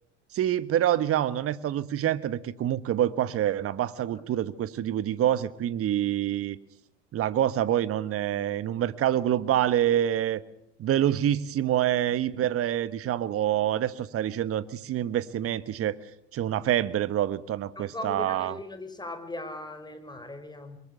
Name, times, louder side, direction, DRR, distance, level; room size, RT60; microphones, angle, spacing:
voice 1, 0.3-6.6 7.1-10.4 10.8-16.0 16.3-18.6, right 11 dB, 40° right, 16 dB, 1.1 m, -26 dB
voice 2, 17.8-20.8, left 2 dB, 10° left, 9 dB, 5.0 m, -39 dB
22.5 x 21.5 x 6.8 m, 0.78 s
hypercardioid pair, 75°, 35 cm